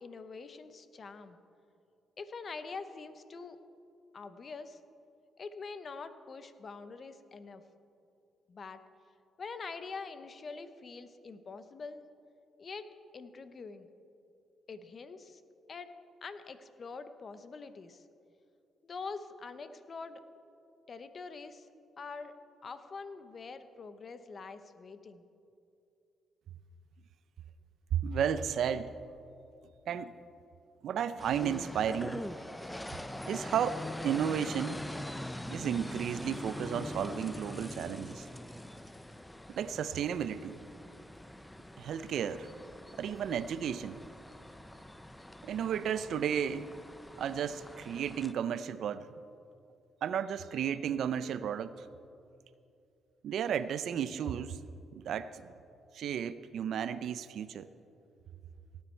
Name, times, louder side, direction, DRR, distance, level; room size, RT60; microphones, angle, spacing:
voice 1, 0.0-1.4 2.2-3.6 4.1-4.8 5.4-7.6 8.5-8.8 9.4-12.0 12.6-12.9 13.1-13.9 14.7-15.4 15.7-18.0 18.8-20.2 20.9-21.7 22.0-22.4 22.6-25.2, left 4 dB, 45° left, 11 dB, 0.8 m, -44 dB
voice 2, 27.9-28.9 29.9-30.1 30.8-32.2 33.3-34.8 35.5-38.3 39.5-40.6 41.8-42.5 43.0-44.0 45.4-46.7 47.2-49.1 50.0-51.9 53.2-54.6 54.9-55.4 55.9-57.7, right 8 dB, 70° right, 14 dB, 0.5 m, -33 dB
sound 1, 31.2-48.3, left 1 dB, 10° left, 0.5 m, -43 dB
17.5 x 9.5 x 4.4 m, 2.6 s
cardioid pair, 95°, 0 cm